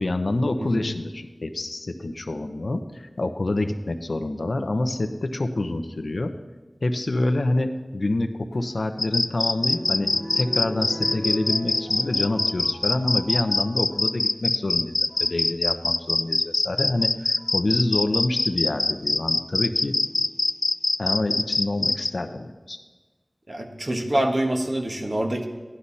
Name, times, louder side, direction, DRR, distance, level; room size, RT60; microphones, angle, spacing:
voice 1, 0.0-6.3 6.8-10.1 10.4-19.9 21.0-22.8, left 2 dB, 90° left, 7 dB, 0.9 m, -27 dB
sound 1, 8.5-14.2 14.9-15.3 16.6-16.7 17.4-17.7 19.8-20.4 21.1-21.2 21.4-21.5, equal, 40° right, 3.7 m, -38 dB
sound 2, 9.0-22.1, left 2 dB, 70° left, 0.4 m, -23 dB
voice 2, 23.5-25.4, right 1 dB, 60° right, 2 dB, 1.6 m, -25 dB
15.5 x 11.5 x 4.2 m, 1.3 s
wide cardioid pair, 55°, 0 cm